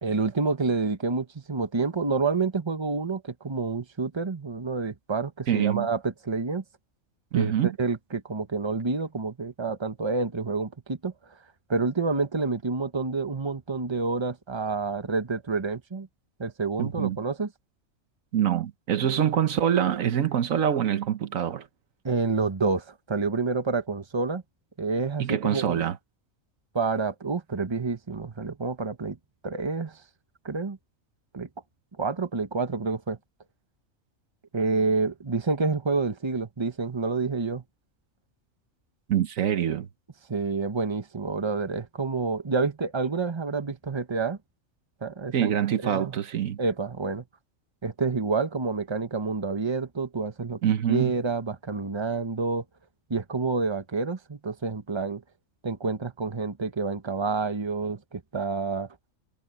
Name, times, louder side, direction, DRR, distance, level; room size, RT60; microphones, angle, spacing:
voice 1, 0.0-6.6 7.3-11.1 11.7-16.1 16.4-17.5 22.0-24.4 24.8-25.8 26.7-29.2 29.4-30.0 30.4-30.8 31.3-31.5 32.0-33.2 34.5-37.6 40.3-44.4 45.0-45.5 45.8-46.1 46.6-47.2 47.8-50.6 50.9-52.6 53.1-55.2 55.6-58.9, right 4 dB, 20° right, 1.2 m, -28 dB
voice 2, 5.5-5.9 7.3-7.7 16.8-17.2 18.3-21.7 25.2-26.0 39.1-39.9 45.3-46.6 50.6-51.1, right 9 dB, 80° right, 1.4 m, -25 dB
omnidirectional pair, 1.4 m